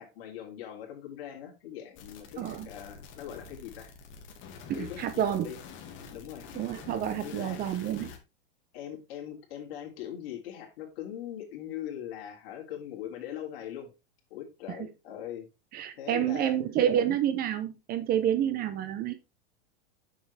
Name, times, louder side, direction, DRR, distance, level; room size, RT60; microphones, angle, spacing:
voice 1, 0.0-3.9 4.7-5.6 6.1-6.5 7.2-7.6 8.7-13.9 14.3-15.5 16.0-16.5, left 10 dB, 65° left, 3.1 m, -41 dB
sound 1, 2.0-8.2, left 6 dB, 35° left, 1.9 m, -47 dB
voice 2, 2.4-2.7 4.7-5.5 6.5-8.1 15.7-19.1, right 10 dB, 30° right, 0.7 m, -29 dB
7.1 x 6.9 x 3.3 m
supercardioid pair, 140°, 32 cm